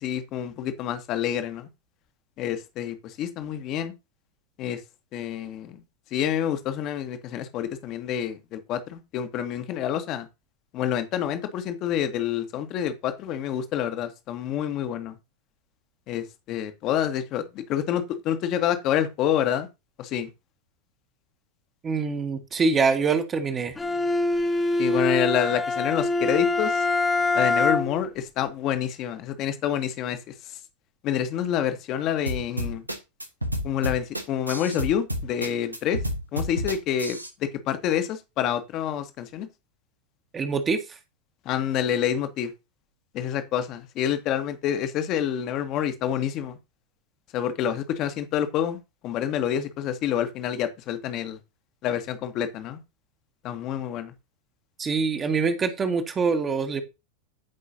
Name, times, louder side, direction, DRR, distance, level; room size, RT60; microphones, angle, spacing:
voice 1, 0.0-1.7 2.4-3.9 4.6-4.8 5.1-5.8 6.1-10.3 10.7-15.1 16.1-19.7 20.0-20.3 24.8-26.8 27.3-30.2 31.0-32.8 33.6-36.0 36.3-39.5 41.4-42.5 43.1-46.6 47.3-51.4 51.8-52.8 53.4-54.1, left 10 dB, 35° left, 1.5 m, -28 dB
voice 2, 21.8-23.7 40.3-41.0 54.8-56.8, right 4 dB, 20° right, 1.5 m, -24 dB
Bowed string instrument, 23.8-28.1, left 2 dB, 10° left, 1.2 m, -24 dB
sound 1, 32.3-37.3, equal, 85° right, 1.3 m, -30 dB
14.5 x 5.4 x 2.8 m
figure-of-eight pair, 90°, 0 cm